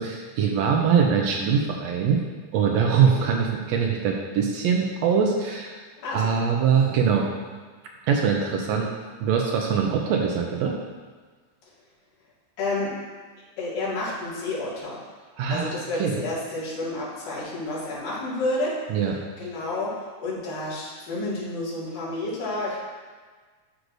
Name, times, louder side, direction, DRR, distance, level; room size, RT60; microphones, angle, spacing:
voice 1, 0.0-2.2 2.5-5.8 6.1-7.3 8.1-8.9 9.2-10.7 15.4-15.7 16.0-16.2 18.9-19.1, right 6 dB, 80° right, 0 dB, 1.5 m, -22 dB
voice 2, 6.0-6.5 12.6-12.9 13.6-15.0 15.5-18.8 19.4-22.8, left 2 dB, 85° left, -8 dB, 3.7 m, -30 dB
12.0 x 4.8 x 2.6 m, 1.5 s
omnidirectional pair, 3.7 m